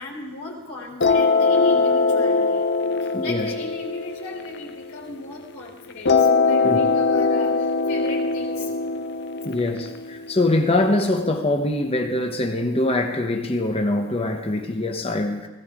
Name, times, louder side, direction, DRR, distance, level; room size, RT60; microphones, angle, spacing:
voice 1, 0.0-2.7 3.0-8.7, left 3 dB, 85° left, 3.3 m, -37 dB
sound 1, 1.0-5.4 6.1-11.0, left 4 dB, 55° left, 0.6 m, -22 dB
voice 2, 3.1-3.5 6.6-6.8 9.4-15.5, left 2 dB, 30° left, 1.0 m, -23 dB
16.0 x 15.5 x 3.7 m
head